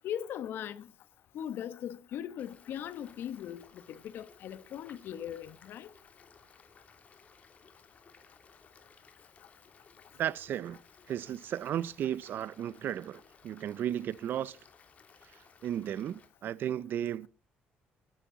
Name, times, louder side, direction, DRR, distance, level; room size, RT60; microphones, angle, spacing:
voice 1, 0.0-0.9 1.3-5.9, left 10 dB, 70° left, 1.3 m, -39 dB
sound 1, 2.4-16.3, left 5 dB, 40° left, 3.0 m, -60 dB
voice 2, 10.2-10.8 11.1-14.6 15.6-17.3, right 10 dB, 65° right, 0.7 m, -34 dB
22.0 x 10.5 x 4.1 m
cardioid pair, 100°, 4 cm